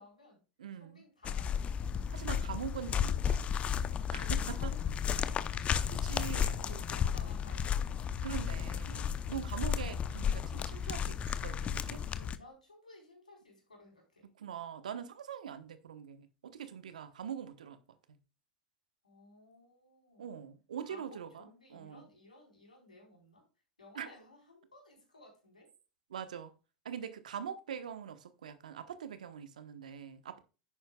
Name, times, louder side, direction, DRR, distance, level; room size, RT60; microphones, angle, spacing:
voice 1, 0.0-0.4 0.8-1.8 4.5-5.8 6.4-8.3 12.1-14.3 19.0-20.4 20.8-23.4 23.8-25.7, left 2 dB, 90° left, 4.5 m, -57 dB
voice 2, 0.6-1.0 2.1-3.5 4.1-4.7 5.5-5.6 5.9-6.9 8.2-12.1 14.4-17.8 18.1-18.2 20.2-22.0 23.9-24.1 26.1-26.5 26.8-30.4, right 8 dB, 75° right, 1.1 m, -43 dB
sound 1, 1.2-12.4, left 8 dB, 30° left, 0.7 m, -33 dB
10.5 x 8.9 x 2.3 m
hypercardioid pair, 85°, 4 cm